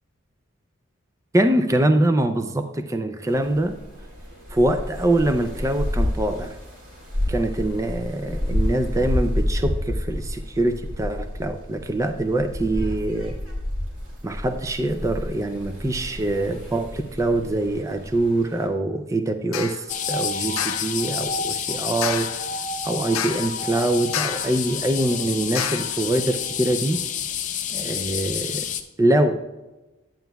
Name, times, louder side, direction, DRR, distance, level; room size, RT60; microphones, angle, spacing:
voice 1, 1.3-3.8 4.5-6.6 7.3-13.3 14.2-22.3 22.8-27.0 27.7-28.6 29.0-29.4, right 1 dB, 15° right, 7 dB, 0.4 m, -24 dB
sound 1, 3.3-18.7, left 1 dB, 75° right, 2.3 m, -30 dB
sound 2, 19.5-19.8 20.6-20.9 22.0-22.5 23.1-23.6 24.1-24.6 25.5-26.0, left 9 dB, 90° left, 0.5 m, -29 dB
sound 3, 19.9-28.8, left 7 dB, 35° left, 0.5 m, -29 dB
11.0 x 9.0 x 2.3 m, 1.1 s
head